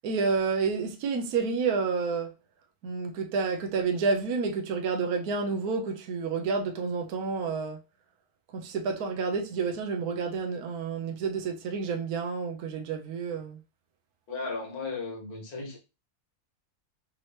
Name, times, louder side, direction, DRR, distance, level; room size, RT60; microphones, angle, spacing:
voice 1, 0.0-2.3 2.8-7.8 8.5-13.6, right 5 dB, 75° right, 1.2 m, -29 dB
voice 2, 14.3-15.8, left 3 dB, 75° left, 1.9 m, -35 dB
5.3 x 2.9 x 3.2 m
omnidirectional pair, 1.6 m